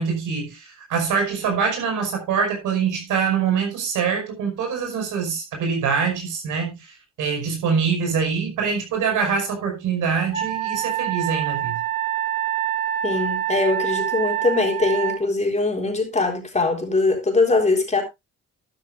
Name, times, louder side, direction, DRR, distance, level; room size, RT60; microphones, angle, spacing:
voice 1, 0.0-11.8, right 6 dB, 85° right, 5.7 m, -24 dB
Wind instrument woodwind instrument, 10.3-15.2, right 11 dB, 20° right, 3.0 m, -26 dB
voice 2, 13.0-18.0, left 3 dB, 20° left, 4.1 m, -21 dB
12.0 x 11.5 x 2.6 m
cardioid pair, 90°, 30 cm